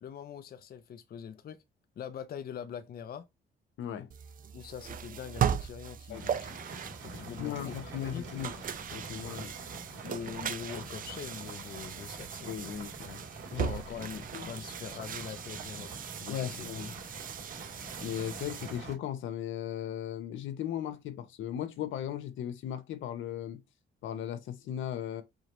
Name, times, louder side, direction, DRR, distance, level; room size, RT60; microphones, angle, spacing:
voice 1, 0.0-1.6 2.0-3.3 4.5-6.7 7.0-8.3 9.4-9.6 10.0-12.5 13.6-15.9 16.2-16.7, left 8 dB, 50° left, 0.6 m, -43 dB
voice 2, 3.8-4.1 6.1-6.3 7.3-8.6 8.9-9.5 12.5-13.2 13.5-13.7 14.3-14.5 16.3-16.9 18.0-23.6 24.0-25.2, left 10 dB, 80° left, 0.8 m, -37 dB
sound 1, 4.1-18.8, right 8 dB, 45° right, 0.5 m, -38 dB
sound 2, 6.1-19.0, right 3 dB, 70° right, 2.7 m, -45 dB
4.9 x 3.0 x 2.5 m
cardioid pair, 90°, 20 cm